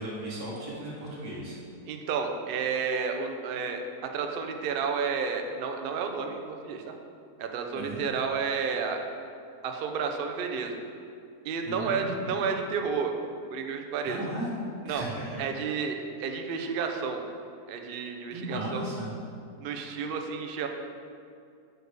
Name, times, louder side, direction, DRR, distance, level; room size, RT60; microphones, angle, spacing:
voice 1, 0.0-1.6 7.7-8.0 11.6-12.4 14.0-14.5 14.9-15.4 18.3-19.1, right 1 dB, 70° right, -6 dB, 2.1 m, -36 dB
voice 2, 1.9-6.8 7.4-9.0 9.6-10.8 11.4-13.1 13.5-14.2 14.9-15.0 15.4-17.2 17.7-18.9 19.6-20.7, right 5 dB, 90° right, 4 dB, 0.5 m, -31 dB
6.3 x 5.0 x 4.7 m, 2.4 s
omnidirectional pair, 1.7 m